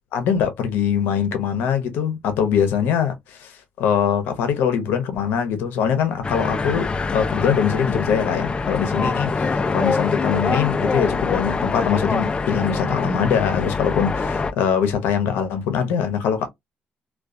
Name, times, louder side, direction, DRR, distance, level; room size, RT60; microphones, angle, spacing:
voice 1, 0.1-16.5, left 7 dB, 80° left, 0.7 m, -22 dB
sound 1, 6.2-14.5, left 4 dB, 30° left, 0.4 m, -24 dB
2.3 x 2.3 x 2.4 m
cardioid pair, 80°, 3 cm